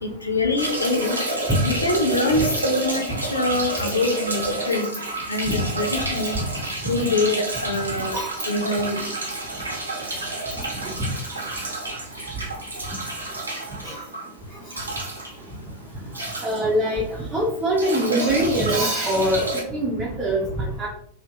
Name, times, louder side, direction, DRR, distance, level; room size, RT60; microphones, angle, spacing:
voice 1, 0.0-1.2 1.6-4.9 5.3-6.4 6.8-8.2 8.5-9.0, left 2 dB, 80° left, 2 dB, 0.4 m, -24 dB
sound 1, 0.6-17.2 17.5-19.6, right 2 dB, 80° right, 0.5 m, -29 dB
voice 2, 16.4-17.0 17.3-19.4 19.7-20.9, right 1 dB, 10° right, -5 dB, 0.5 m, -23 dB
2.5 x 2.1 x 2.4 m, 0.69 s
figure-of-eight pair, 90°, 0 cm